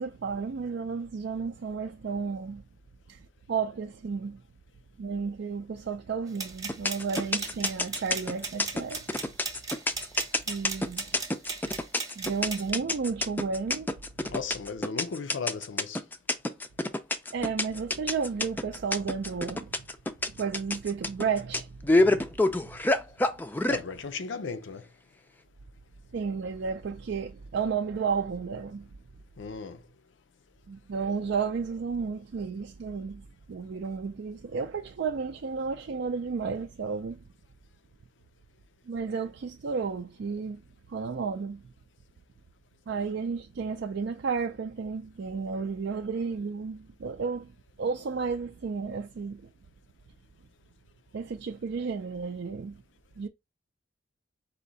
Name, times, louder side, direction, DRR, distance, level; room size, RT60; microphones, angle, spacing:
voice 1, 0.0-2.6 3.1-3.2 3.5-4.4 5.0-9.0 10.5-11.0 12.2-13.9 17.3-19.7 20.3-21.7 22.0-22.3 26.1-28.9 30.7-33.2 33.5-37.2 38.9-40.6 40.9-41.6 42.9-47.5 47.8-49.5 51.1-52.8 53.2-53.3, right 5 dB, 65° right, 0.4 m, -32 dB
sound 1, 6.3-12.7, right 4 dB, 20° right, 0.9 m, -38 dB
sound 2, 6.7-23.8, left 2 dB, 10° left, 0.4 m, -27 dB
voice 2, 14.3-16.0 23.6-24.9 29.4-29.8, left 5 dB, 80° left, 0.5 m, -36 dB
4.2 x 2.7 x 3.9 m
head